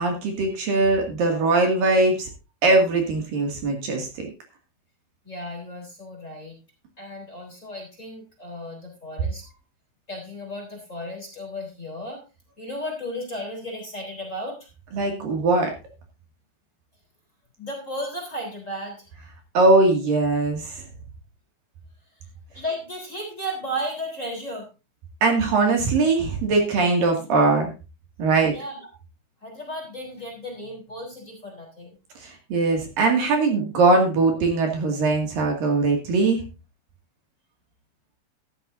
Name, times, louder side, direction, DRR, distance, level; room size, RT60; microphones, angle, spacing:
voice 1, 0.0-2.3 2.6-4.3 14.9-15.7 19.5-20.8 25.2-27.7 28.2-28.6 32.2-36.4, right 3 dB, 60° right, 2 dB, 3.8 m, -21 dB
voice 2, 5.2-6.6 7.0-9.5 10.1-12.2 12.6-14.7 17.6-19.1 22.5-24.7 28.5-28.8 29.4-32.0, equal, 20° left, 1 dB, 3.6 m, -34 dB
13.5 x 13.0 x 2.7 m, 0.29 s
omnidirectional pair, 4.7 m